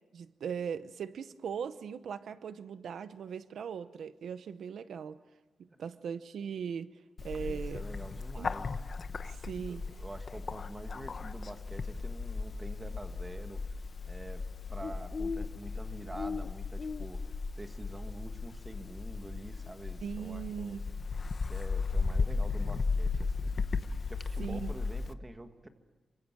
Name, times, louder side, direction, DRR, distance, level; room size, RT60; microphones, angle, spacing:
voice 1, 0.1-5.2 5.6-7.8 8.4-8.5 9.2-9.9 20.0-20.8 24.4-24.7, right 7 dB, 80° right, 12 dB, 0.9 m, -39 dB
Bird, 7.2-25.1, left 4 dB, 40° left, 1.0 m, -36 dB
voice 2, 7.4-8.8 9.6-13.8 14.0-14.4 14.7-20.8 21.4-23.6 24.1-25.7, right 1 dB, 15° right, 6 dB, 1.9 m, -47 dB
28.5 x 25.0 x 7.5 m, 1.3 s
wide cardioid pair, 165°, 0 cm